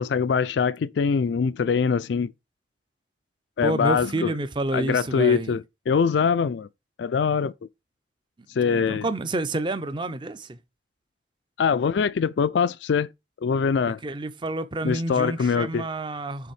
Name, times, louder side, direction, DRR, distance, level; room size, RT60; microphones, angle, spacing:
voice 1, 0.0-2.3 3.6-4.3 4.7-6.7 7.0-7.5 8.6-9.1 11.6-13.1 13.4-14.0 14.8-15.8, left 6 dB, 75° left, 0.4 m, -23 dB
voice 2, 3.6-5.6 8.6-10.6 13.9-16.5, right 2 dB, 25° right, 0.5 m, -29 dB
6.8 x 3.4 x 4.8 m
head